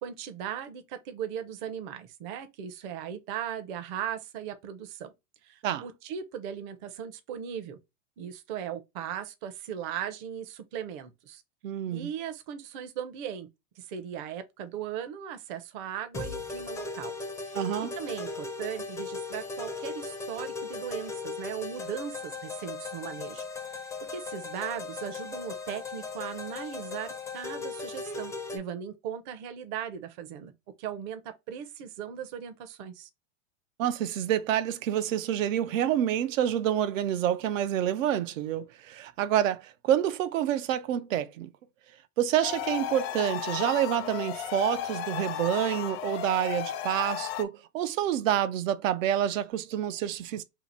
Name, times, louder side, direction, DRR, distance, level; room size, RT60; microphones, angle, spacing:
voice 1, 0.0-5.1 5.4-7.8 8.2-11.4 11.9-13.5 13.8-17.1 17.5-17.6 18.0-23.8 24.1-30.5 30.8-33.1, right 9 dB, 40° right, 0.6 m, -38 dB
voice 2, 11.6-12.1 17.5-17.9 33.8-41.5 42.2-50.4, right 11 dB, 85° right, 0.6 m, -28 dB
sound 1, 16.1-28.6, left 4 dB, 10° left, 0.4 m, -38 dB
sound 2, 42.4-47.5, left 11 dB, 55° left, 0.6 m, -34 dB
2.8 x 2.4 x 4.1 m
supercardioid pair, 145°, 38 cm